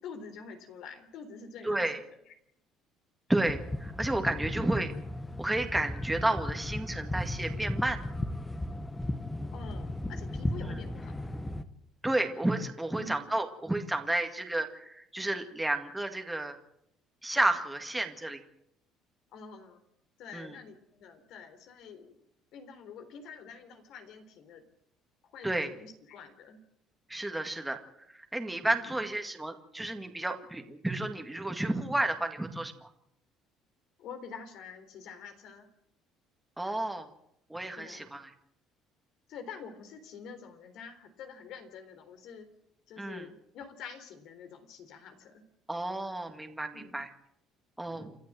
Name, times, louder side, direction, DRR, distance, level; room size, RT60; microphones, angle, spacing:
voice 1, 0.0-2.3 4.4-4.7 9.5-11.1 12.9-13.2 19.3-19.9 20.2-22.2 22.5-24.6 25.2-26.6 28.8-29.0 34.0-35.7 36.7-36.8 37.8-38.1 39.3-42.5 42.9-45.4 46.7-47.0 47.9-48.1, left 5 dB, 65° left, 8 dB, 3.8 m, -47 dB
voice 2, 1.6-2.0 3.3-4.9 5.4-8.0 10.6-10.8 12.0-16.6 17.2-18.4 20.3-20.5 25.4-25.7 27.1-27.8 28.1-32.9 36.6-37.1 37.5-38.3 43.0-43.3 45.7-47.1 47.8-48.1, right 1 dB, 5° right, 4 dB, 2.0 m, -31 dB
sound 1, 3.4-11.6, left 1 dB, 10° left, 1.3 m, -35 dB
28.5 x 12.0 x 7.7 m, 0.78 s
cardioid pair, 125°, 0 cm